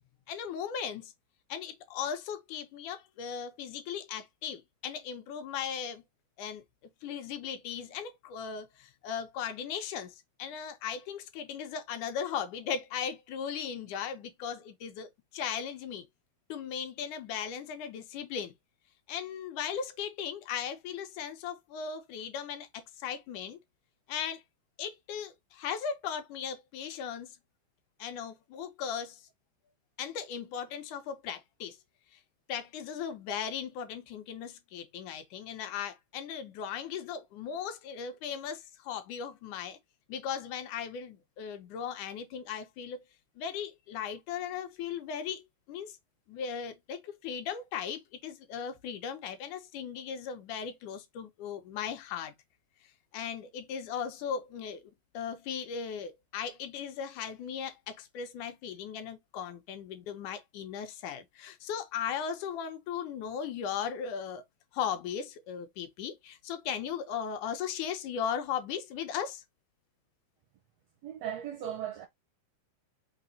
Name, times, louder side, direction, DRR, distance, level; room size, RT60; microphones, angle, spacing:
voice 1, 0.3-1.1 1.5-6.0 6.4-16.1 16.5-18.5 19.1-23.6 24.1-24.4 24.8-27.4 28.0-29.3 30.0-31.8 32.1-32.2 32.5-39.8 40.1-43.0 43.4-45.4 45.7-46.0 46.3-52.3 53.1-64.4 64.7-69.4, left 7 dB, 75° left, 2.1 m, -37 dB
voice 2, 71.0-72.1, right 10 dB, 80° right, 1.5 m, -37 dB
5.8 x 2.0 x 3.9 m
omnidirectional pair, 3.7 m